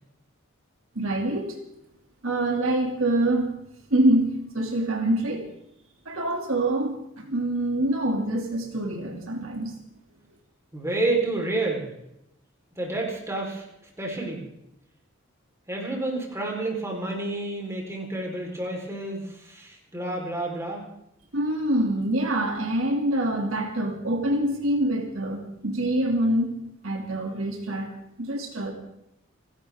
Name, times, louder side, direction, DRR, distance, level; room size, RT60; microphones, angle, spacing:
voice 1, 1.0-1.6 2.2-3.5 3.9-5.5 6.1-9.7 21.3-26.6 26.8-27.9 28.2-28.7, right 1 dB, 75° right, 2 dB, 2.5 m, -25 dB
voice 2, 10.7-11.8 12.8-13.6 14.0-14.4 15.7-20.8, right 2 dB, 15° right, -1 dB, 4.1 m, -29 dB
29.0 x 12.0 x 3.6 m, 0.81 s
head